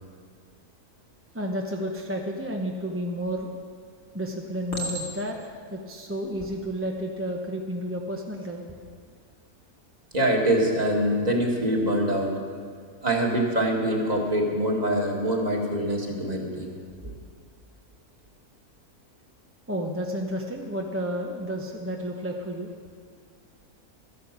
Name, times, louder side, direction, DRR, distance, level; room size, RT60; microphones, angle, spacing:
voice 1, 1.3-3.5 4.1-5.4 5.7-8.6 19.7-22.7, equal, 10° right, 0 dB, 0.7 m, -31 dB
Chink clink, 3.2-3.7 4.7-5.5 6.2-6.5, right 1 dB, 70° left, 2.4 m, -35 dB
voice 2, 10.1-12.3 13.0-16.7, right 1 dB, 25° right, -1 dB, 2.0 m, -24 dB
13.5 x 11.0 x 6.6 m, 2.1 s
omnidirectional pair, 1.5 m